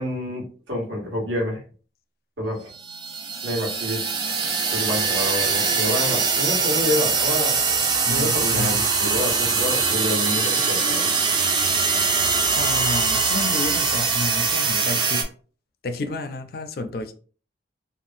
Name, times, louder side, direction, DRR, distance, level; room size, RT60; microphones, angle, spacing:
voice 1, 0.0-1.6 2.4-2.7 3.4-4.0 4.7-7.5 8.1-11.1, left 1 dB, 90° right, 1.3 m, -28 dB
sound 1, 2.8-15.2, right 5 dB, 25° right, 0.3 m, -22 dB
voice 2, 8.1-8.8 12.6-15.3 15.8-17.1, left 3 dB, 55° left, 0.4 m, -30 dB
3.4 x 2.0 x 2.5 m
head